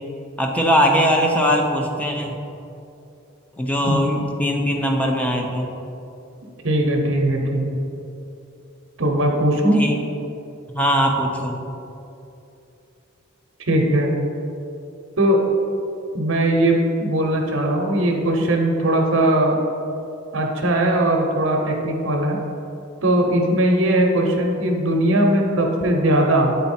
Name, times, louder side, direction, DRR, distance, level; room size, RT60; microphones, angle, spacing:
voice 1, 0.4-2.4 3.6-5.7 9.7-9.9 10.7-11.6, equal, 5° left, 1 dB, 0.6 m, -20 dB
voice 2, 6.6-7.8 9.0-9.8 13.6-14.1 15.2-15.4 16.1-19.6 20.3-22.4 23.0-26.5, right 1 dB, 65° right, 1 dB, 0.8 m, -19 dB
8.3 x 4.0 x 4.3 m, 2.8 s
head